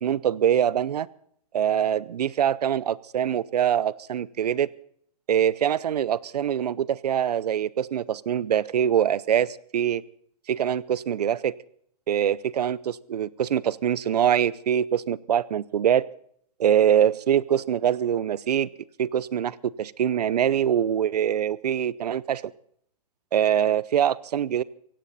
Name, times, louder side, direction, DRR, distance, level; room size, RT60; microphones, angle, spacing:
voice 1, 0.0-1.1 1.5-4.7 5.3-10.0 10.5-11.5 12.1-16.0 16.6-18.7 19.0-22.4 23.3-24.6, right 9 dB, 80° right, 21 dB, 0.7 m, -24 dB
17.0 x 16.5 x 4.1 m, 0.64 s
hypercardioid pair, 160°, 20 cm